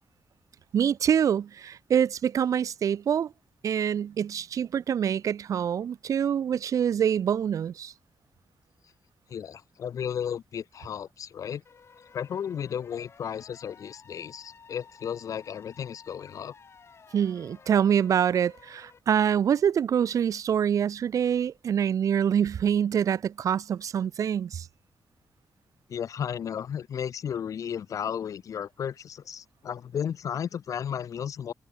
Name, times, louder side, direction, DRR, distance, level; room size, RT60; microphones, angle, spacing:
voice 1, 0.7-3.3 3.6-7.9 17.1-24.7, right 8 dB, 70° right, 2.2 m, -25 dB
voice 2, 9.3-11.6 12.1-16.5 25.9-31.5, left 8 dB, 70° left, 2.5 m, -34 dB
sound 1, 11.6-19.0, left 6 dB, 50° left, 7.6 m, -54 dB
cardioid pair, 110°, 6 cm